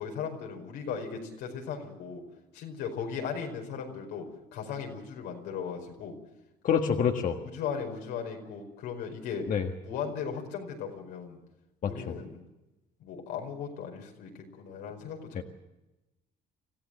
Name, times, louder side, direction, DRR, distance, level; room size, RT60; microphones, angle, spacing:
voice 1, 0.0-2.2 2.5-4.3 4.5-6.1 7.4-9.5 9.8-11.4 11.8-12.4 13.0-14.3 14.6-15.4, left 6 dB, 90° left, 2 dB, 5.0 m, -37 dB
voice 2, 6.6-7.4 9.5-9.7 11.8-12.2 15.3-15.4, left 7 dB, 50° left, 4 dB, 1.6 m, -27 dB
25.5 x 15.5 x 7.8 m, 1.0 s
cardioid pair, 110°, 17 cm